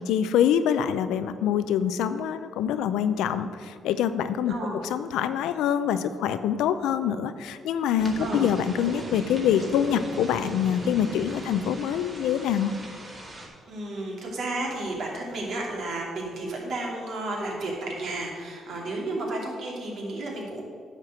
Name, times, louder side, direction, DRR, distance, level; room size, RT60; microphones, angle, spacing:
voice 1, 0.0-12.7, left 9 dB, 90° left, 12 dB, 0.5 m, -25 dB
sound 1, 8.0-13.5, right 1 dB, 30° right, 2.1 m, -38 dB
voice 2, 8.2-8.5 13.7-20.6, right 2 dB, 65° right, -2 dB, 2.5 m, -32 dB
9.7 x 4.4 x 7.6 m, 2.1 s
cardioid pair, 90°, 0 cm